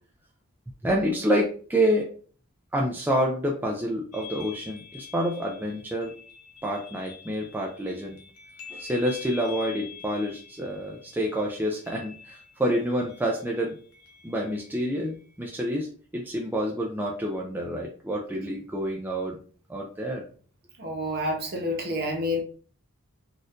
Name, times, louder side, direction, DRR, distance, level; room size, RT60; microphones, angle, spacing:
voice 1, 0.8-2.1 2.7-6.1 6.6-8.2 8.7-13.8 14.2-19.4 19.7-20.2, equal, 10° right, -1 dB, 0.4 m, -28 dB
sound 1, 4.1-15.5, left 7 dB, 80° left, 0.8 m, -47 dB
voice 2, 20.8-22.4, left 1 dB, 45° right, 2 dB, 0.9 m, -28 dB
4.2 x 2.5 x 2.5 m, 0.42 s
head